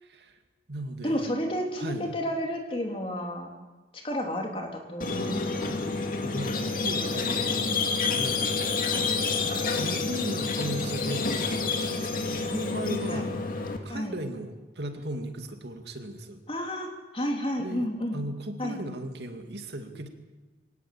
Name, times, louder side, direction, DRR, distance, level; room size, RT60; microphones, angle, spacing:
voice 1, 0.0-0.4 0.7-1.3 1.8-2.1 6.2-8.7 9.2-16.4 17.6-20.1, right 1 dB, 70° right, 6 dB, 2.3 m, -37 dB
voice 2, 1.0-3.5 3.9-5.8 13.1-13.3 13.9-14.2 16.5-18.2 18.6-18.8, equal, 30° left, 2 dB, 3.5 m, -31 dB
Squeak, 5.0-13.8, left 4 dB, 50° left, 2.3 m, -28 dB
22.5 x 18.5 x 8.6 m, 1.2 s
head